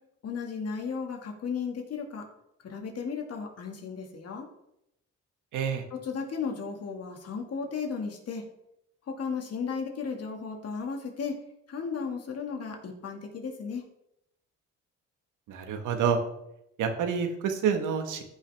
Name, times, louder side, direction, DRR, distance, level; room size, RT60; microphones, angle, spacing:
voice 1, 0.2-2.3 2.6-4.5 5.9-8.5 9.1-11.4 11.7-13.8, left 5 dB, 55° left, 2 dB, 2.1 m, -35 dB
voice 2, 5.5-5.8 15.5-16.2 16.8-18.2, right 7 dB, 85° right, 5 dB, 1.4 m, -28 dB
14.5 x 5.7 x 3.5 m, 0.83 s
cardioid pair, 90°, 30 cm